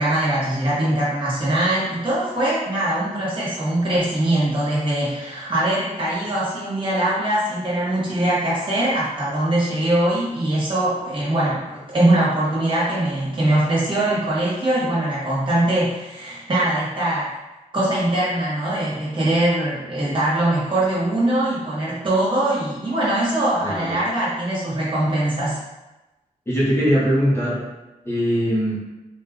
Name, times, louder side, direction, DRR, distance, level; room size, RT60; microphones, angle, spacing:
voice 1, 0.0-17.3 17.7-25.6, right 1 dB, 40° right, -7 dB, 1.4 m, -22 dB
voice 2, 23.6-24.0 26.5-27.6 28.0-28.8, equal, 20° left, -8 dB, 1.0 m, -20 dB
4.0 x 2.5 x 3.6 m, 1.0 s
wide cardioid pair, 165°, 14 cm